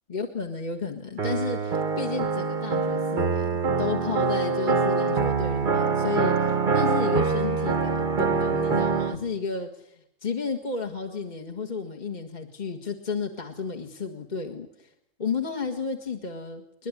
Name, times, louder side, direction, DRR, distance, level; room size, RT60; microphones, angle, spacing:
voice 1, 0.1-14.9 15.2-16.9, left 5 dB, 30° left, 2 dB, 1.7 m, -32 dB
sound 1, 1.2-9.2, right 5 dB, 35° right, 1.2 m, -25 dB
22.0 x 21.5 x 9.8 m, 0.76 s
omnidirectional pair, 1.6 m